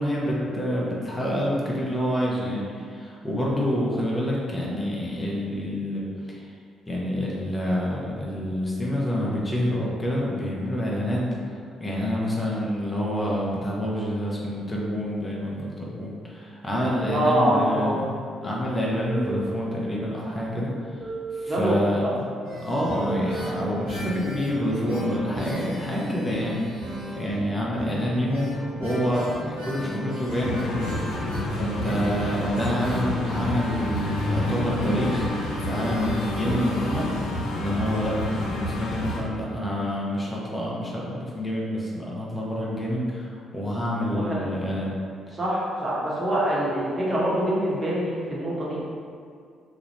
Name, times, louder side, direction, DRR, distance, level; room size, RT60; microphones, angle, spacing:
voice 1, 0.0-6.0 6.3-6.5 6.9-11.4 11.8-18.1 18.4-20.9 21.3-22.2 22.6-26.8 27.1-30.9 31.5-35.3 35.6-37.1 37.5-44.9 45.3-45.4, equal, 20° left, -5 dB, 0.6 m, -27 dB
sound 1, 17.0-18.2 19.0-20.2 21.0-22.2 23.0-24.2, right 3 dB, 10° right, 0.9 m, -35 dB
voice 2, 17.1-18.0 21.5-22.1 44.1-44.5 45.3-48.8, right 1 dB, 35° right, -6 dB, 0.7 m, -25 dB
sound 2, 22.4-38.1 38.4-38.5 38.7-38.8, right 1 dB, 80° right, 0.5 m, -35 dB
sound 3, 30.3-39.2, left 1 dB, 65° left, 0.4 m, -29 dB
2.4 x 2.0 x 3.1 m, 2.2 s
figure-of-eight pair, 40°, 0 cm